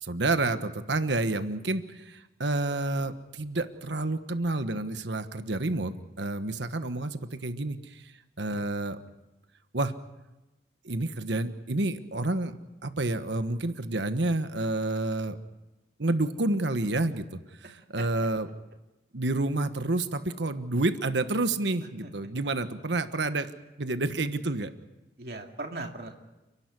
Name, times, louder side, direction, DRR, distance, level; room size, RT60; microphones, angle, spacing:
voice 1, 0.0-8.1 8.4-9.0 9.7-9.9 10.8-12.6 12.8-15.4 16.0-17.4 17.9-18.5 19.1-23.5 23.8-24.7, right 2 dB, 85° right, 9 dB, 1.3 m, -29 dB
voice 2, 21.8-22.1 25.2-26.1, right 2 dB, 60° right, 2 dB, 2.5 m, -39 dB
30.0 x 11.5 x 9.6 m, 1.0 s
head